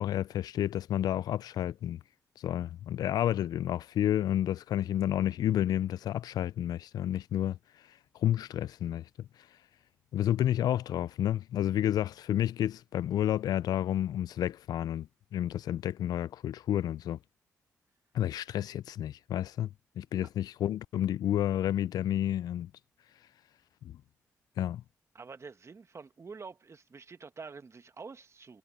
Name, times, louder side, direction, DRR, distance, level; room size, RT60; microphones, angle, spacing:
voice 1, 0.0-2.0 2.4-9.3 10.1-17.2 18.1-19.7 20.0-22.7 23.8-24.0 24.6-24.8, left 11 dB, 75° left, 0.4 m, -30 dB
voice 2, 25.1-28.6, right 4 dB, 45° right, 1.6 m, -47 dB
supercardioid pair, 50°, 7 cm